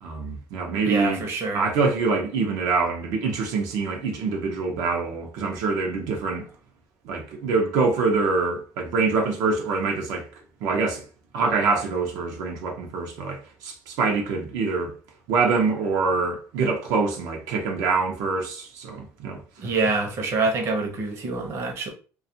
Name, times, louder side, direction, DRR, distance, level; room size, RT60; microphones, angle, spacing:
voice 1, 0.0-1.2 1.5-6.5 7.0-10.3 10.6-11.0 11.3-14.9 15.3-19.4, right 4 dB, 80° right, 0.6 m, -25 dB
voice 2, 0.9-1.7 19.6-21.9, right 3 dB, 45° right, 0.7 m, -26 dB
2.5 x 2.3 x 2.7 m
cardioid pair, 155°, 6 cm